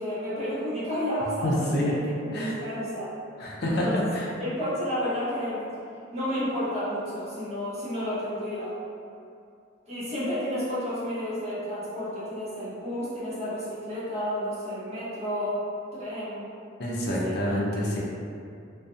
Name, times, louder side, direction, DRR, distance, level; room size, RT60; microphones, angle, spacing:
voice 1, 0.0-2.0 2.3-3.1 3.7-4.1 4.4-5.7 6.1-8.8 9.9-15.6 15.9-16.5 17.2-17.3 17.7-18.0, equal, 35° right, -11 dB, 1.0 m, -31 dB
voice 2, 1.4-1.9 2.3-2.5 3.4-4.3 16.8-18.0, equal, 55° left, -4 dB, 0.5 m, -27 dB
2.5 x 2.2 x 2.6 m, 2.5 s
head